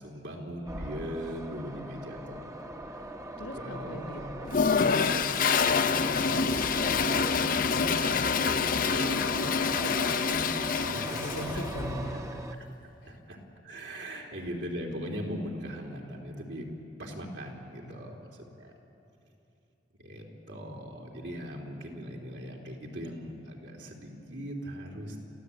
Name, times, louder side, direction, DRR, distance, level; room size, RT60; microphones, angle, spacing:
voice 1, 0.0-2.5 3.3-4.3 7.1-9.5 9.8-11.4 13.1-16.7 17.0-18.7 20.0-25.2, equal, 75° right, 0 dB, 3.3 m, -40 dB
sound 1, 0.7-12.6, right 1 dB, 15° right, 1.0 m, -40 dB
voice 2, 3.4-6.5 10.9-12.2 13.0-13.2 17.9-18.1, left 1 dB, 65° left, 6 dB, 1.5 m, -40 dB
Toilet flush, 4.5-11.7, left 5 dB, 50° left, 0.6 m, -27 dB
29.5 x 15.0 x 8.5 m, 2.8 s
head